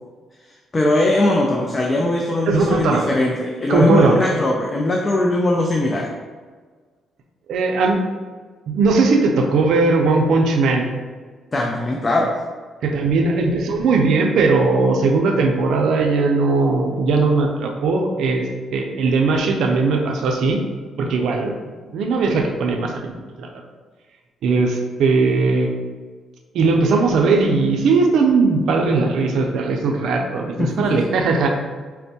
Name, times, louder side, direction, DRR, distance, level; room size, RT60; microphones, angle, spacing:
voice 1, 0.7-6.1 11.5-12.3 30.6-31.0, left 2 dB, 30° left, 0 dB, 0.4 m, -20 dB
voice 2, 2.5-3.0 3.7-4.2 7.5-8.0 8.7-10.8 12.8-18.4 18.7-20.6 21.0-21.5 21.9-23.5 24.4-25.7 26.5-31.5, right 3 dB, 75° right, 3 dB, 0.4 m, -18 dB
4.3 x 2.1 x 2.7 m, 1.5 s
cardioid pair, 90°, 0 cm